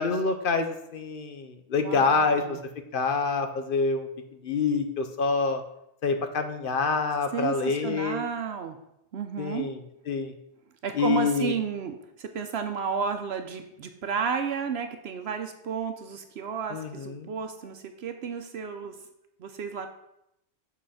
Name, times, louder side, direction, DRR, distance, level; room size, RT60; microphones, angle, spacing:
voice 1, 0.0-2.6 2.9-4.1 4.4-5.6 6.0-8.2 9.4-9.8 10.1-10.3 10.9-11.5 16.7-17.3, left 4 dB, 55° left, 7 dB, 0.9 m, -26 dB
voice 2, 1.8-2.6 7.3-8.8 9.1-9.7 10.8-19.0 19.4-19.9, right 6 dB, 70° right, 7 dB, 0.9 m, -32 dB
7.7 x 4.1 x 5.7 m, 0.81 s
omnidirectional pair, 1.2 m